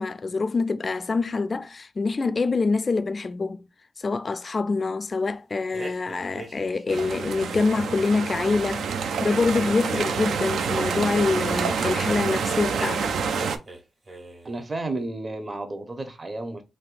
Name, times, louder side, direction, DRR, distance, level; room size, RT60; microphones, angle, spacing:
voice 1, 0.0-3.7 4.0-13.1, left 4 dB, 45° left, 0.3 m, -25 dB
sound 1, 5.7-7.6 9.2-11.0 12.7-13.8 14.1-14.6, right 1 dB, 55° right, 1.4 m, -41 dB
sound 2, 6.9-13.6, right 5 dB, 90° right, 0.3 m, -27 dB
voice 2, 14.4-16.6, right 2 dB, 35° right, 0.7 m, -32 dB
3.4 x 2.7 x 2.4 m
cardioid pair, 70°, 0 cm